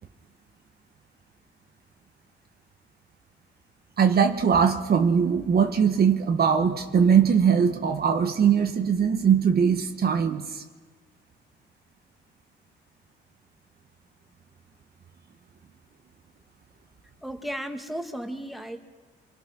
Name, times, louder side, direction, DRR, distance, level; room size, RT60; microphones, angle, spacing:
voice 1, 4.0-10.6, right 7 dB, 50° right, 6 dB, 1.5 m, -21 dB
voice 2, 17.2-18.8, equal, ahead, 5 dB, 2.3 m, -34 dB
25.0 x 24.0 x 6.1 m, 1.4 s
cardioid pair, 90°, 20 cm